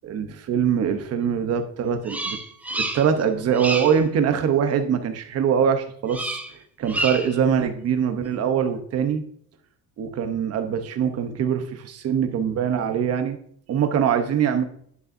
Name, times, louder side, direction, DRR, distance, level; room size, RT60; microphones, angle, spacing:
voice 1, 0.0-2.4 2.7-6.4 6.8-9.2 10.0-13.4 13.7-14.6, right 7 dB, 40° right, 8 dB, 0.9 m, -23 dB
Bird vocalization bird call bird song, 2.1-3.2 3.5-4.0 6.1-6.5 6.8-7.4, right 2 dB, 5° right, 0.4 m, -29 dB
11.0 x 6.8 x 2.6 m, 0.64 s
cardioid pair, 180°, 38 cm